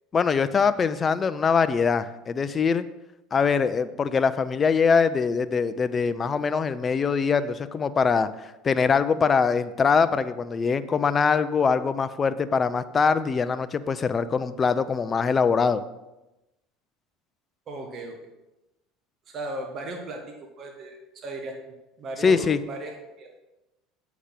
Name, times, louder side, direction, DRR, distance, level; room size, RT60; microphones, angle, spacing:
voice 1, 0.1-2.8 3.3-15.8 22.2-22.6, left 5 dB, 30° left, 13 dB, 0.6 m, -23 dB
voice 2, 17.7-18.2 19.3-21.5 22.0-23.4, right 2 dB, 45° right, 2 dB, 1.5 m, -36 dB
8.2 x 6.0 x 5.9 m, 0.98 s
hypercardioid pair, 75°, 0 cm